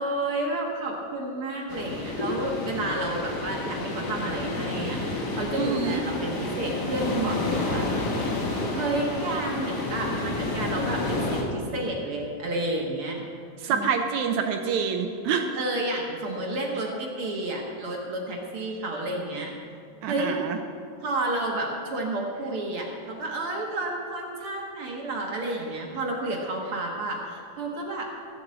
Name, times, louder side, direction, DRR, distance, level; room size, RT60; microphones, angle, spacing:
voice 1, 0.0-7.9 8.7-13.2 13.7-13.9 15.6-19.5 20.1-20.3 21.0-28.1, right 2 dB, 50° right, -1 dB, 2.2 m, -31 dB
sound 1, 1.7-11.4, left 2 dB, 40° left, 1.9 m, -30 dB
voice 2, 5.6-6.0 13.6-15.5 20.0-20.6, right 6 dB, 80° right, 5 dB, 2.0 m, -26 dB
15.0 x 7.8 x 7.8 m, 2.4 s
omnidirectional pair, 3.4 m